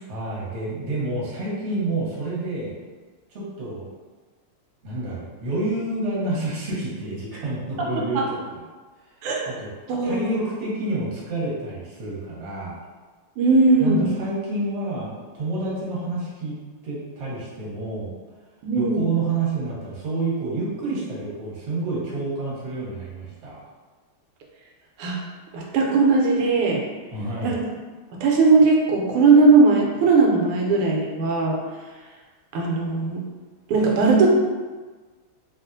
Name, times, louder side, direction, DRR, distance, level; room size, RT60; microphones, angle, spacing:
voice 1, 0.1-2.8 3.3-3.9 4.8-8.6 9.5-9.7 10.0-12.8 13.8-16.5 16.8-18.1 18.7-23.6 27.1-27.6, right 2 dB, 50° right, -6 dB, 0.8 m, -29 dB
voice 2, 9.9-10.4 13.4-14.1 18.6-19.1 25.0-25.2 25.5-26.8 27.4-27.6 28.2-31.6 32.5-33.2 33.7-34.3, right 3 dB, 90° right, -1 dB, 1.5 m, -18 dB
3.4 x 2.4 x 2.5 m, 1.3 s
omnidirectional pair, 2.3 m